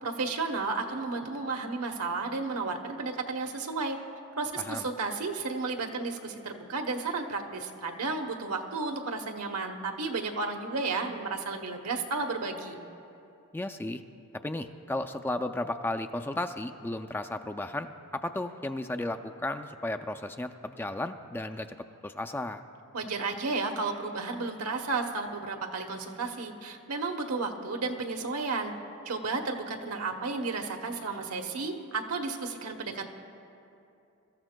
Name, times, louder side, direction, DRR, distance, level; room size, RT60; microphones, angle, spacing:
voice 1, 0.0-4.0 4.3-12.8 22.9-28.7 29.0-33.1, right 3 dB, 80° right, 4 dB, 1.0 m, -33 dB
voice 2, 13.5-14.0 14.4-21.8 22.0-22.6, left 2 dB, 10° left, 8 dB, 0.3 m, -34 dB
23.5 x 13.5 x 2.2 m, 2.7 s
head